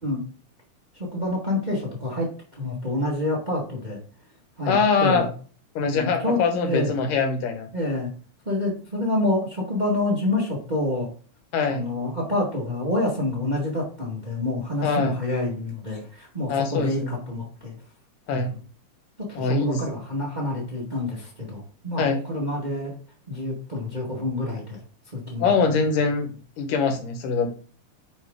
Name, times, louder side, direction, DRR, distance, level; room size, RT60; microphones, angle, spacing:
voice 1, 0.9-4.0 4.6-5.3 5.8-6.9 7.7-8.1 8.4-11.1 11.7-17.7 18.3-18.6 19.2-22.9 23.3-24.8 25.1-25.4, left 2 dB, 30° right, -3 dB, 0.7 m, -27 dB
voice 2, 4.7-5.3 5.8-7.7 11.5-11.9 14.8-15.2 16.5-17.1 18.3-18.5 19.4-19.8 22.0-22.2 25.4-26.3 26.6-27.5, left 4 dB, 85° left, 5 dB, 2.9 m, -23 dB
9.9 x 3.8 x 3.6 m, 0.40 s
omnidirectional pair, 3.7 m